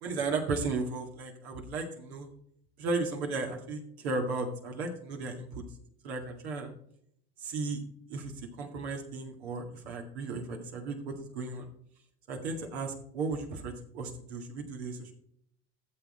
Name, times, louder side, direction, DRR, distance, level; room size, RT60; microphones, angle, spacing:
voice 1, 0.0-2.3 2.8-5.6 6.0-6.7 7.4-7.8 8.1-8.3 8.6-11.7 12.3-15.1, right 3 dB, 85° right, 2 dB, 2.1 m, -35 dB
12.5 x 7.1 x 4.3 m, 0.70 s
hypercardioid pair, 80°, 31 cm